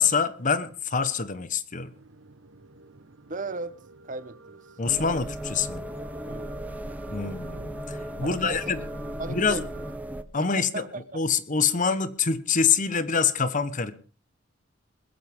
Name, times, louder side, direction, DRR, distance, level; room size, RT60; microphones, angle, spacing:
voice 1, 0.0-1.9 4.8-5.8 7.1-8.8 9.3-9.6 10.3-10.8 11.1-13.9, left 6 dB, 40° left, 1.1 m, -25 dB
sound 1, 1.9-10.0, right 3 dB, 85° right, 1.2 m, -49 dB
voice 2, 3.3-3.7 4.0-4.6 6.2-6.5 8.2-8.8 9.2-9.8 10.3-11.2, right 3 dB, 40° right, 1.0 m, -36 dB
sound 2, 4.8-10.2, equal, 10° right, 0.8 m, -36 dB
21.0 x 14.5 x 3.6 m
head